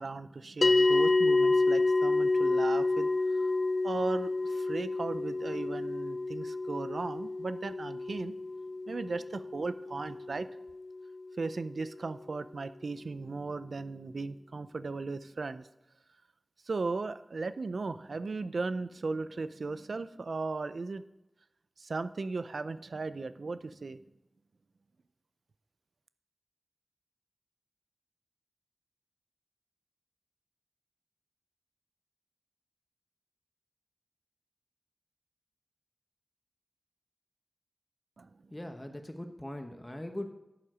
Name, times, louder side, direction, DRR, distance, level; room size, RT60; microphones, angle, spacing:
voice 1, 0.0-3.5 3.8-8.4 8.9-10.5 11.4-15.7 16.7-21.0 21.8-24.0 38.2-38.3, right 3 dB, 80° right, 13 dB, 0.4 m, -37 dB
sound 1, 0.6-11.2, left 2 dB, 60° left, 0.4 m, -29 dB
voice 2, 38.5-40.3, left 1 dB, 20° left, 5 dB, 1.0 m, -40 dB
11.0 x 7.2 x 5.0 m, 0.91 s
wide cardioid pair, 65°, 0 cm